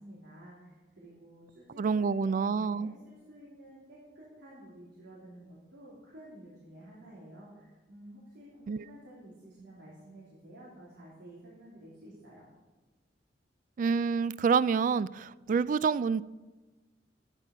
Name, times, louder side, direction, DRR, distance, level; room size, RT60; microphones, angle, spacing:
voice 1, 0.0-12.5, right 1 dB, 85° right, -7 dB, 3.6 m, -51 dB
voice 2, 1.8-2.9 8.7-8.8 13.8-16.2, right 5 dB, 45° right, 18 dB, 0.3 m, -27 dB
12.5 x 10.0 x 5.5 m, 1.2 s
head